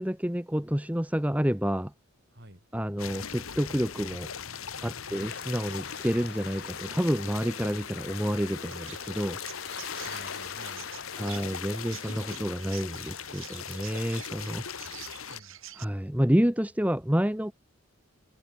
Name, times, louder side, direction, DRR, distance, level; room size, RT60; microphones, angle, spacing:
voice 1, 0.0-1.9 2.7-4.4 4.8-9.4 11.2-14.6 15.7-17.5, equal, 5° right, 1.0 m, -29 dB
voice 2, 2.3-2.6 5.0-5.4 10.0-11.4 14.7-15.0 15.3-15.6, right 1 dB, 50° right, 6.4 m, -51 dB
sound 1, 3.0-15.4, left 7 dB, 75° left, 1.8 m, -40 dB
sound 2, 5.1-12.3, left 6 dB, 50° left, 1.8 m, -45 dB
Chirp tweet, 8.7-15.8, right 12 dB, 70° right, 4.3 m, -48 dB
head